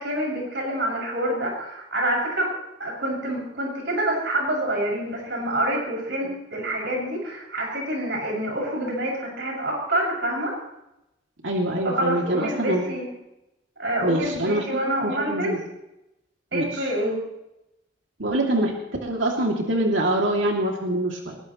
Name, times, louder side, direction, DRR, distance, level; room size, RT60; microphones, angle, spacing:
voice 1, 0.0-2.5 2.8-10.6 11.8-13.1 13.8-15.5 16.5-17.2, right 1 dB, 65° right, -2 dB, 6.8 m, -27 dB
voice 2, 11.4-12.9 14.0-14.6 15.0-15.6 16.5-16.9 18.2-18.7 19.0-21.4, right 1 dB, 80° right, 0 dB, 2.7 m, -24 dB
21.5 x 21.0 x 3.2 m, 0.90 s
head